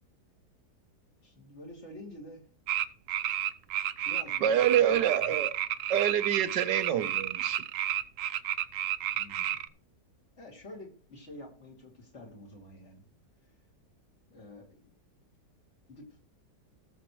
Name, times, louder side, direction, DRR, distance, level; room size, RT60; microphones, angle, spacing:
voice 1, 1.2-2.4 4.0-4.8 5.2-5.4 9.1-9.6 10.3-13.0 14.3-14.9 15.9-16.2, left 1 dB, 40° left, 2.9 m, -48 dB
sound 1, 2.7-9.7, right 11 dB, 65° right, 0.8 m, -31 dB
voice 2, 4.4-5.5 5.9-7.6, right 10 dB, 90° right, 1.5 m, -26 dB
18.0 x 6.8 x 3.1 m
omnidirectional pair, 1.8 m